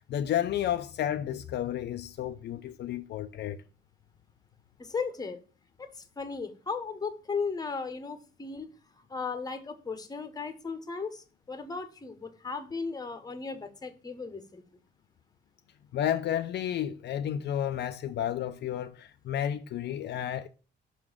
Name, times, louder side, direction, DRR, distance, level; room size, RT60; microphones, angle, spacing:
voice 1, 0.1-3.6 15.9-20.5, left 10 dB, 65° left, 0.5 m, -31 dB
voice 2, 4.8-5.4 5.8-8.7 9.1-14.6, left 4 dB, 20° left, 0.9 m, -36 dB
6.0 x 3.8 x 6.2 m
cardioid pair, 125°, 19 cm